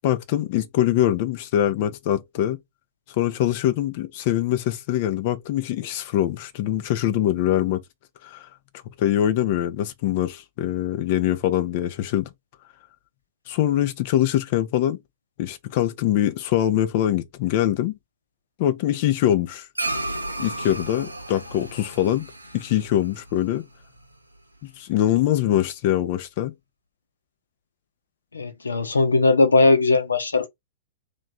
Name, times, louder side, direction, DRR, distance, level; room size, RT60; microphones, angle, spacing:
voice 1, 0.0-2.6 3.1-7.8 8.2-8.5 9.0-12.3 13.5-15.0 15.4-18.0 18.6-19.7 20.4-22.3 22.5-23.6 24.6-26.5, left 12 dB, 45° left, 0.7 m, -23 dB
sound 1, 19.8-24.4, right 2 dB, 90° right, 0.8 m, -33 dB
voice 2, 28.3-30.5, left 3 dB, 75° left, 1.0 m, -19 dB
3.3 x 3.1 x 4.0 m
figure-of-eight pair, 105°, 0 cm